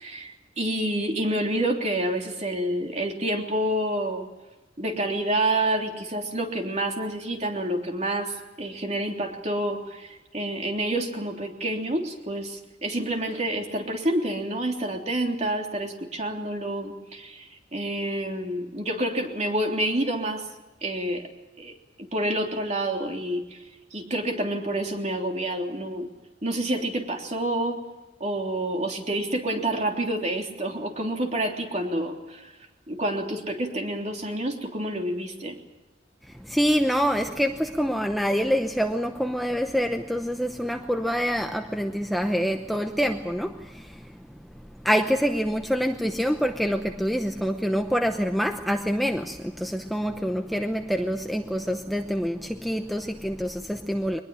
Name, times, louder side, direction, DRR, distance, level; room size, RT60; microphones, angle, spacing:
voice 1, 0.0-4.3 4.8-20.5 20.8-21.2 21.6-21.7 22.0-23.6 23.9-26.1 26.4-27.8 28.2-32.5 32.9-35.6, right 1 dB, 35° right, 3.4 m, -28 dB
voice 2, 36.2-44.4 44.8-54.2, equal, ahead, 0.8 m, -26 dB
23.0 x 20.5 x 8.9 m
head